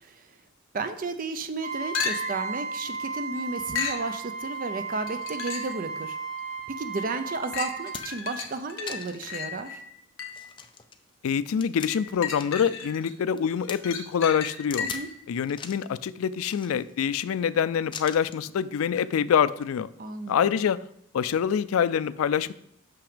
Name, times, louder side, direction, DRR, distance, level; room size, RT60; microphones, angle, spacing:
voice 1, 0.7-6.2 6.7-9.8 14.8-15.1 20.0-20.5, right 3 dB, 40° right, 8 dB, 0.5 m, -33 dB
Trumpet, 1.6-8.0, right 4 dB, 75° right, 2.9 m, -35 dB
sound 1, 1.9-2.5 3.7-4.1 5.1-5.8 6.4-6.5 7.5-10.5 11.9-13.1 13.5-15.2 19.0-19.1, left 6 dB, 65° left, 1.0 m, -34 dB
sound 2, 7.1-7.2 7.6-8.3 8.9-9.3 9.8-9.9 10.3-12.7 13.0-13.8 14.7-15.1 15.5-15.9 16.4-17.1 17.9-18.5 19.5-19.7, left 6 dB, 25° left, 0.4 m, -41 dB
voice 2, 11.2-14.9 15.3-19.9 20.3-20.8 21.1-22.5, left 7 dB, 90° left, 17 dB, 0.3 m, -25 dB
6.1 x 5.9 x 5.0 m, 0.75 s
head